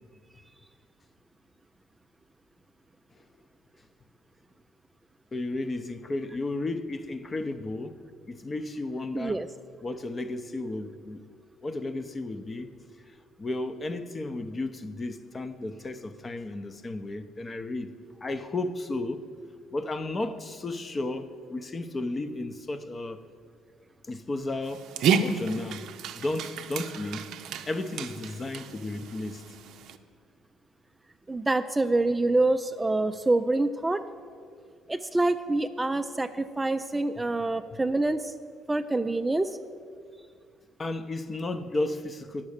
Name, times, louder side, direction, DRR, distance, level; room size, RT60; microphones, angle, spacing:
voice 1, 5.3-7.9 8.3-9.4 9.8-11.2 11.6-12.7 13.4-17.9 18.2-19.2 19.7-23.2 24.1-24.9 25.2-25.9 26.1-27.2 27.7-29.4 40.8-42.5, left 2 dB, 30° left, 0.6 m, -33 dB
voice 2, 9.1-9.5 31.3-34.0 34.9-38.3 38.7-39.6, right 2 dB, 15° right, 0.3 m, -26 dB
Dog, 24.6-30.0, right 6 dB, 70° right, 0.5 m, -31 dB
9.8 x 7.3 x 6.5 m
cardioid pair, 95°, 0 cm